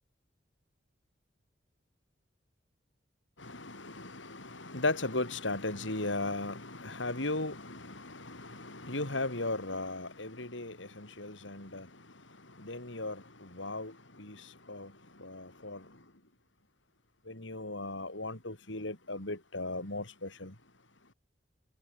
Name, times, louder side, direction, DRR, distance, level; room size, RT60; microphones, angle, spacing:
voice 1, 3.4-11.9 12.6-14.9 15.2-15.9 17.3-20.5, left 2 dB, 85° left, 5.7 m, -37 dB
head